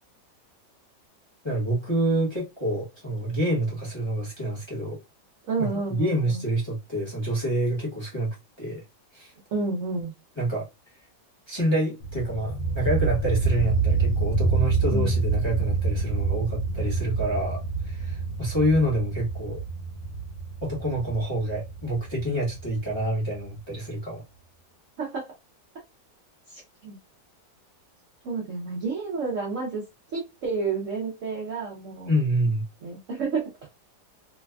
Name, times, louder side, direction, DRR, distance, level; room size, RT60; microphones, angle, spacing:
voice 1, 1.4-5.0 5.6-8.8 9.1-9.3 10.4-10.7 11.5-19.6 20.6-24.2 32.1-32.6, right 1 dB, 20° left, 0.9 m, -27 dB
voice 2, 5.4-6.4 9.5-10.1 14.9-15.1 25.0-25.3 26.5-27.0 28.2-29.8 30.1-32.1 32.8-33.7, right 4 dB, 65° right, 0.8 m, -30 dB
sound 1, 12.0-23.6, right 4 dB, 85° left, 1.3 m, -27 dB
3.3 x 2.1 x 2.2 m
omnidirectional pair, 1.9 m